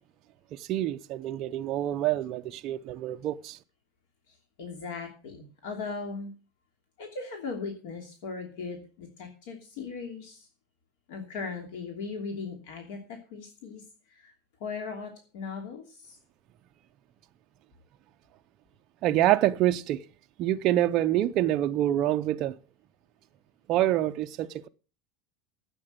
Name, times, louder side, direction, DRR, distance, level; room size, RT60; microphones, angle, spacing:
voice 1, 0.5-3.6 19.0-20.0 20.4-22.6 23.7-24.7, right 13 dB, 35° right, 0.5 m, -26 dB
voice 2, 4.3-6.3 7.0-10.5 11.1-14.3 14.6-16.2, left 4 dB, 65° left, 2.9 m, -38 dB
12.5 x 8.6 x 6.6 m
supercardioid pair, 180°, 0 cm